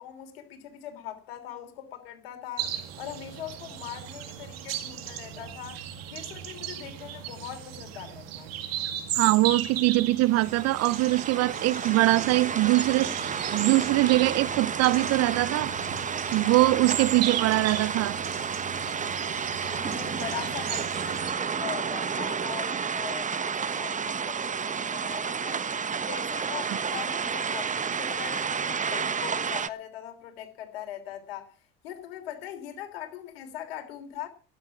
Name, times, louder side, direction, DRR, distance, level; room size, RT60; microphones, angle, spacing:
voice 1, 0.0-5.8 6.1-8.5 19.6-25.7 26.0-31.5 31.8-34.3, left 11 dB, 80° left, 3.3 m, -41 dB
sound 1, 2.6-21.3, right 10 dB, 80° right, 2.1 m, -36 dB
voice 2, 9.2-13.2 13.5-15.7 16.3-18.2 26.7-26.8, right 18 dB, 60° right, 0.7 m, -22 dB
sound 2, 10.2-29.7, right 6 dB, 25° right, 1.0 m, -31 dB
12.5 x 9.7 x 7.3 m
hypercardioid pair, 65°, 29 cm